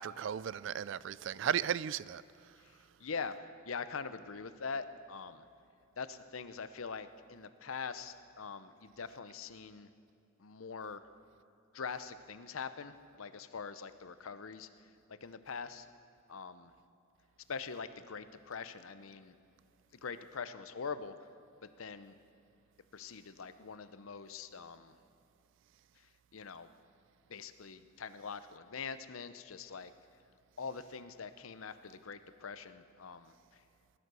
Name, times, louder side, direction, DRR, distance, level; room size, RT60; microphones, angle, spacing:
voice 1, 0.0-2.2, right 9 dB, 60° right, 0.3 m, -35 dB
voice 2, 3.0-3.3 3.7-5.4 6.0-9.9 10.4-11.0 11.7-14.7 15.2-15.9 16.3-16.7 17.5-19.3 20.0-21.1 21.8-22.1 22.9-24.9 26.3-26.7 27.3-29.9 30.6-33.3, left 5 dB, 80° left, 0.7 m, -43 dB
18.5 x 11.0 x 6.3 m
head